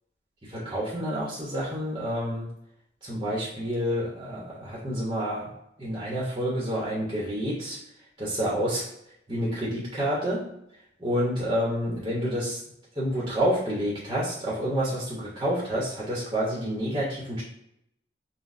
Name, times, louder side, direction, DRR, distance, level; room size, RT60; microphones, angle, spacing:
voice 1, 0.4-2.5 3.0-5.5 5.8-7.8 8.2-8.8 9.3-10.4 11.0-12.6 12.9-17.4, equal, 25° right, -6 dB, 1.0 m, -28 dB
6.0 x 2.3 x 2.6 m, 0.77 s
head